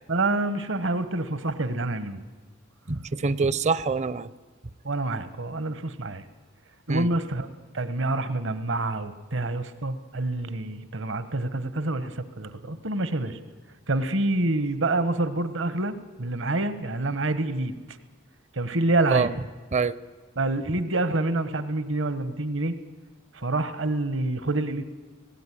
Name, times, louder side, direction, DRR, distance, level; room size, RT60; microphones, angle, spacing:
voice 1, 0.1-2.2 4.8-6.2 6.9-7.5 7.7-13.4 13.9-17.7 18.5-19.3 20.4-22.7 23.3-24.8, right 2 dB, 70° right, 12 dB, 1.3 m, -27 dB
voice 2, 2.9-4.3 6.9-7.1 19.1-19.3 19.7-20.0, right 4 dB, 35° right, 18 dB, 0.6 m, -25 dB
18.5 x 16.0 x 10.0 m, 1.3 s
head